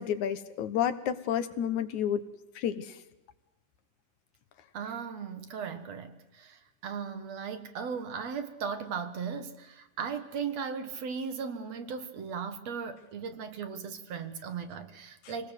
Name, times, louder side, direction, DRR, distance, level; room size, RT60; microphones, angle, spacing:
voice 1, 0.0-2.2 2.6-2.9, left 9 dB, 75° left, 11 dB, 2.5 m, -30 dB
voice 2, 4.7-15.5, right 6 dB, 60° right, 9 dB, 2.6 m, -37 dB
26.5 x 19.5 x 8.2 m, 1.0 s
omnidirectional pair, 3.5 m